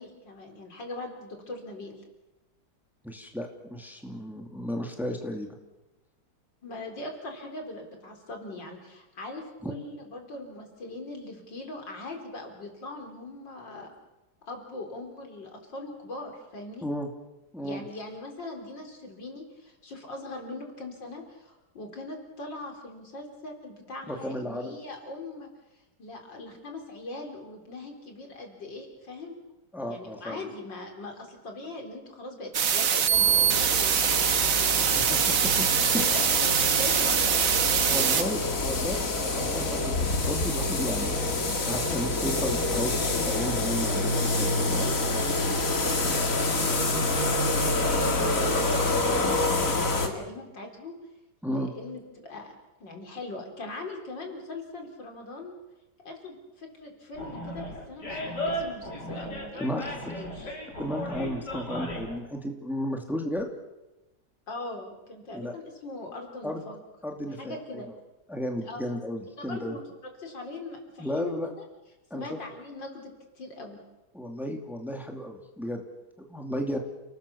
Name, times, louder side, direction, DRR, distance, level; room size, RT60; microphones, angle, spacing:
voice 1, 0.0-2.0 6.6-13.9 14.5-16.9 17.6-25.5 26.0-29.4 29.9-35.3 35.9-38.1 44.8-45.2 45.7-49.7 49.9-51.0 51.5-55.5 56.0-60.6 64.5-66.8 67.4-67.9 68.6-68.8 69.4-71.4 72.1-73.8, left 2 dB, 80° left, 3 dB, 4.8 m, -41 dB
voice 2, 3.0-5.6 9.6-9.7 16.8-17.1 17.5-17.8 24.1-24.7 29.7-30.4 34.8-35.7 35.9-36.1 37.9-41.2 41.6-44.8 51.4-51.7 59.6-59.8 60.8-63.5 65.3-65.5 66.4-66.6 67.0-67.8 68.3-69.7 71.0-71.5 72.1-72.4 74.1-75.8 76.2-76.8, equal, ahead, 3 dB, 2.6 m, -33 dB
sound 1, 32.5-38.2, right 8 dB, 50° right, 1.4 m, -23 dB
sound 2, 33.1-50.1, left 2 dB, 45° left, 2.7 m, -27 dB
Animal, 57.1-62.2, equal, 65° left, 5.0 m, -35 dB
29.5 x 19.0 x 7.1 m, 1.0 s
omnidirectional pair, 1.9 m